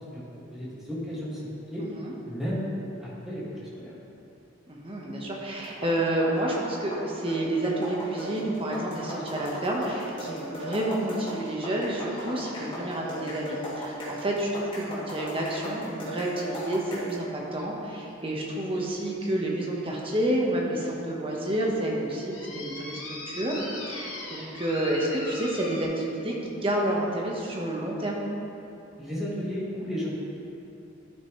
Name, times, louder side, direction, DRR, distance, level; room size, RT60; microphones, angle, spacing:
voice 1, 0.5-1.4 1.7-1.9 2.3-2.6 3.0-3.9 29.0-30.1, equal, ahead, -9 dB, 2.0 m, -33 dB
voice 2, 1.8-2.1 4.7-23.0 23.2-28.3, right 1 dB, 25° right, -2 dB, 1.2 m, -29 dB
sound 1, 5.6-17.2, equal, 25° left, 2.1 m, -37 dB
sound 2, 9.1-14.2 15.4-15.5 16.5-16.7 17.5-17.6 18.1-18.2 18.7-18.9 19.6-19.7 20.2-20.3 20.9-21.0 21.3-21.4 22.3-25.8, left 2 dB, 80° left, 1.7 m, -42 dB
12.5 x 6.0 x 3.2 m, 2.7 s
head